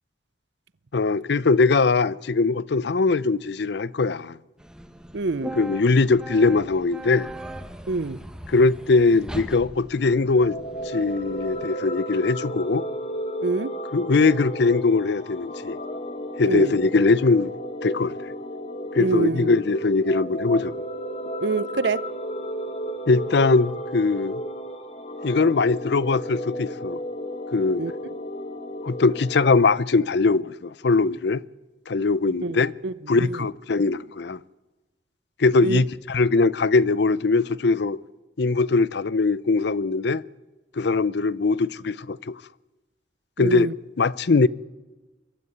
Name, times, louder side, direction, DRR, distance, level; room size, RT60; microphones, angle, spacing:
voice 1, 0.9-4.4 5.6-7.3 8.5-10.6 10.9-12.8 13.9-15.8 16.4-17.5 17.8-18.1 18.9-20.7 23.1-24.4 25.2-27.0 27.5-27.8 28.8-31.4 31.9-32.7 33.1-34.4 35.4-38.0 38.4-40.2 40.8-42.4 43.4-43.7 44.0-44.5, left 3 dB, 65° left, 0.6 m, -21 dB
sound 1, 4.6-11.7, right 1 dB, 5° right, 1.1 m, -40 dB
voice 2, 5.1-5.5 7.9-8.2 13.4-13.7 16.5-16.7 19.0-19.5 21.4-22.0 27.8-27.9 32.4-32.6 32.8-32.9 33.2-33.5 35.6-35.8 43.4-43.7, right 3 dB, 70° right, 0.7 m, -25 dB
sound 2, 10.3-29.6, equal, 35° left, 1.3 m, -33 dB
23.0 x 12.5 x 9.5 m
head